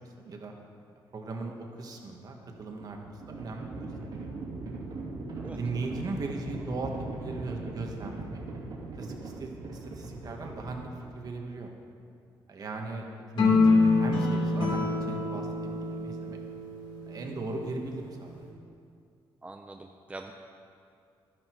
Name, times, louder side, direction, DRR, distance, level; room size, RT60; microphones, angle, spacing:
voice 1, 0.2-0.5 1.1-4.3 5.5-6.9 7.2-8.4 8.8-10.9 11.1-11.7 12.5-15.5 15.8-16.4 17.1-18.4, right 3 dB, 45° right, 2 dB, 1.6 m, -38 dB
Livestock farm animals working animals, 2.4-11.5, right 2 dB, 60° right, 2.8 m, -39 dB
sound 1, 13.4-17.8, left 3 dB, 65° left, 2.7 m, -26 dB
voice 2, 19.4-20.3, right 2 dB, 15° right, 3 dB, 0.5 m, -44 dB
12.0 x 10.5 x 4.7 m, 2.4 s
cardioid pair, 110°, 9 cm